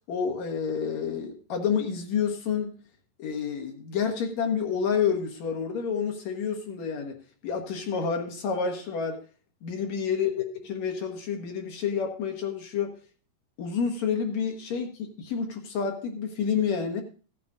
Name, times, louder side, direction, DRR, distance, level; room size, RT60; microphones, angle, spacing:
voice 1, 0.1-2.7 3.2-7.2 7.4-9.2 9.6-10.3 10.7-12.9 13.6-17.0, left 6 dB, 60° left, 3 dB, 2.6 m, -29 dB
16.0 x 9.6 x 2.6 m, 0.38 s
omnidirectional pair, 3.8 m